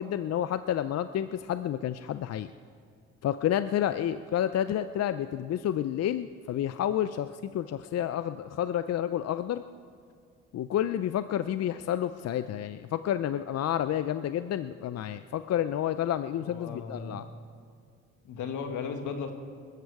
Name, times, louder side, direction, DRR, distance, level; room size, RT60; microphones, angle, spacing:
voice 1, 0.0-2.5 3.2-9.6 10.5-17.3, left 10 dB, 55° left, 12 dB, 0.5 m, -30 dB
voice 2, 16.4-17.2 18.2-19.3, left 5 dB, 80° left, 6 dB, 1.8 m, -36 dB
21.0 x 13.5 x 4.8 m, 2.3 s
cardioid pair, 90°, 30 cm